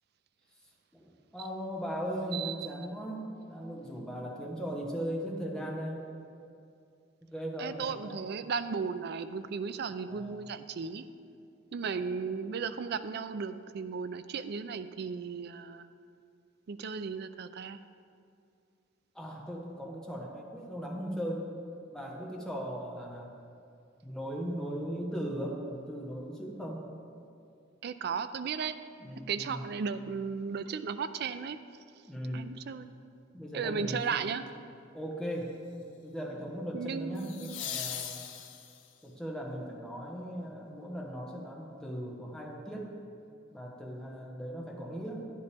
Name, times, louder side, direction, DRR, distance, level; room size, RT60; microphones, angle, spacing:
voice 1, 0.9-6.0 7.3-8.2 10.1-10.5 11.9-12.2 19.1-21.5 21.9-23.3 24.0-26.8 29.0-29.6 32.1-32.5 33.3-34.3 34.9-35.5 36.0-38.2 39.0-43.0 43.5-45.3, equal, 5° left, -2 dB, 1.1 m, -38 dB
voice 2, 7.6-11.0 11.7-15.9 16.7-17.8 27.8-28.8 29.3-31.6 32.3-32.9 33.5-34.4 36.7-37.7, right 5 dB, 55° right, 11 dB, 0.4 m, -35 dB
sound 1, 34.1-34.5 37.1-39.0 41.9-42.0, left 9 dB, 75° left, 0.7 m, -40 dB
10.5 x 9.9 x 3.4 m, 2.4 s
head